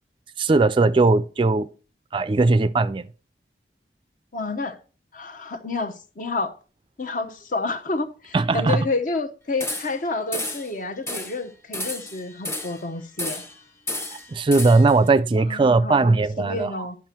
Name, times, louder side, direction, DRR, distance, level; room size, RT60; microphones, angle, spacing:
voice 1, 0.4-1.7 2.1-3.1 8.3-8.8 14.3-16.9, right 3 dB, 30° right, 0.4 m, -19 dB
voice 2, 4.3-4.8 5.1-6.5 7.0-13.4 15.3-17.0, left 3 dB, 50° left, 0.9 m, -29 dB
sound 1, 9.6-10.0 10.3-10.7 11.1-11.4 11.7-12.8 13.2-13.6 13.9-15.0, left 1 dB, 15° left, 1.0 m, -32 dB
11.0 x 6.0 x 4.3 m
head